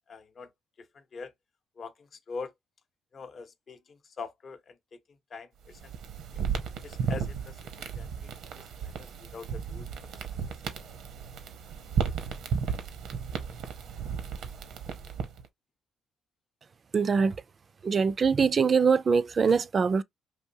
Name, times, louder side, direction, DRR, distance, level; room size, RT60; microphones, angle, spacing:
voice 1, 0.1-0.5 0.9-1.3 1.8-2.5 3.1-5.0 5.3-5.8 6.8-7.6 8.0-8.3 8.6-9.1 9.3-9.9, left 4 dB, 50° left, 0.6 m, -43 dB
sound 1, 5.7-15.5, right 6 dB, 75° right, 0.7 m, -34 dB
voice 2, 16.9-17.4 17.8-20.0, right 5 dB, 45° right, 0.3 m, -23 dB
3.5 x 2.6 x 2.6 m
supercardioid pair, 70°, 0 cm